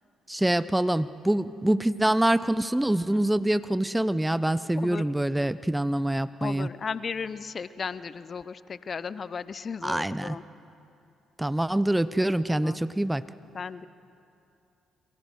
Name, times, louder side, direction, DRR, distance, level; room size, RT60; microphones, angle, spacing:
voice 1, 0.3-6.7 9.8-10.4 11.4-13.2, right 1 dB, 10° right, 15 dB, 0.8 m, -25 dB
voice 2, 6.4-10.4 12.6-12.8 13.5-13.9, left 5 dB, 45° left, 16 dB, 0.7 m, -35 dB
29.5 x 23.5 x 6.3 m, 2.7 s
hypercardioid pair, 45°, 0 cm